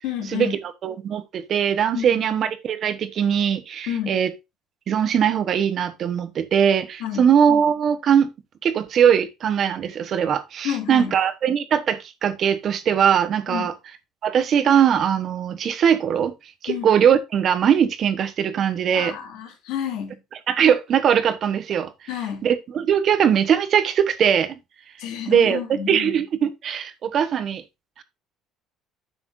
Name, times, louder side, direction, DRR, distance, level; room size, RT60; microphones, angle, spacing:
voice 1, 0.0-0.6 1.9-2.2 3.9-4.2 7.0-7.3 10.6-11.2 13.5-13.7 16.7-16.9 18.9-20.2 22.1-22.5 25.0-26.2, left 9 dB, 80° left, 2.8 m, -30 dB
voice 2, 0.8-4.3 4.9-8.3 8.6-13.7 14.2-16.3 16.6-19.1 20.5-21.9 22.4-24.5 25.3-25.6 25.9-27.6 28.0-28.1, right 8 dB, 40° right, 1.1 m, -20 dB
10.0 x 6.9 x 2.6 m
cardioid pair, 150°, 0 cm